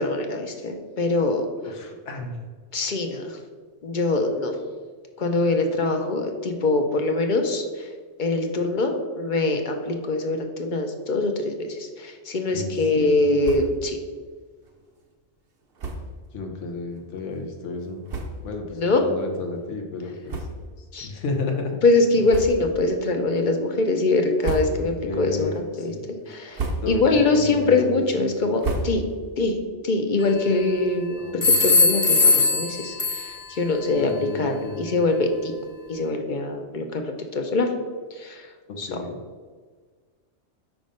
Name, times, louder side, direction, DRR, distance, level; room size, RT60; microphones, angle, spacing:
voice 1, 0.0-1.5 2.7-3.3 3.8-4.5 5.2-7.6 8.2-11.5 12.0-14.0 18.8-19.0 20.9-21.1 21.8-25.5 25.8-25.9 26.3-26.6 26.9-29.0 29.4-29.6 29.8-33.2 33.5-34.1 34.4-35.5 35.9-37.0 37.3-37.7 38.2-38.4 38.8-38.9, left 2 dB, 50° left, 4 dB, 0.7 m, -23 dB
voice 2, 1.6-2.4 12.5-13.4 16.3-18.1 18.4-20.5 21.0-21.8 24.8-26.0 26.8-28.3 31.2-31.6 34.0-34.9 38.7-39.2, left 3 dB, 90° left, 2 dB, 1.1 m, -32 dB
sound 1, 13.4-13.9 14.2-14.3 14.6-14.8 15.7-16.2 16.9-17.0 17.7-17.8 18.1-18.6 19.2-19.3 20.2-20.9 21.3-21.4 22.2-22.9 23.3-23.7 24.2-25.1 25.5-25.9 26.3-27.2 27.5-29.4, right 2 dB, 60° right, 0.9 m, -32 dB
sound 2, 30.2-30.9 31.4-33.6, left 3 dB, 35° left, 0.3 m, -20 dB
5.2 x 3.5 x 5.2 m, 1.5 s
omnidirectional pair, 1.2 m